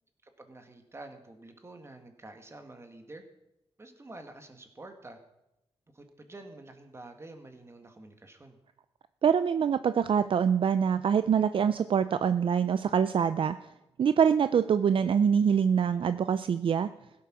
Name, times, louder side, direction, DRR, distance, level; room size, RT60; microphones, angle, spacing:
voice 1, 0.2-3.2 3.8-5.2 5.9-8.6, right 2 dB, 25° right, 6 dB, 1.8 m, -48 dB
voice 2, 9.2-13.6 14.0-16.9, right 7 dB, 55° right, 12 dB, 0.4 m, -25 dB
16.0 x 8.4 x 6.2 m, 0.90 s
wide cardioid pair, 100°, 10 cm